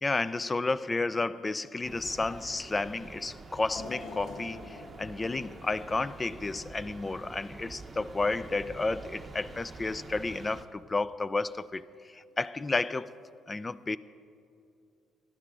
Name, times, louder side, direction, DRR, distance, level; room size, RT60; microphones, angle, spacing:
voice 1, 0.0-13.2 13.5-14.0, left 3 dB, 20° left, 0.3 m, -32 dB
sound 1, 1.8-10.6, right 3 dB, 25° right, 0.8 m, -47 dB
sound 2, 3.7-6.9 7.3-7.5 8.5-8.6, left 3 dB, 75° left, 1.1 m, -46 dB
16.5 x 11.5 x 3.6 m
cardioid pair, 105°, 0 cm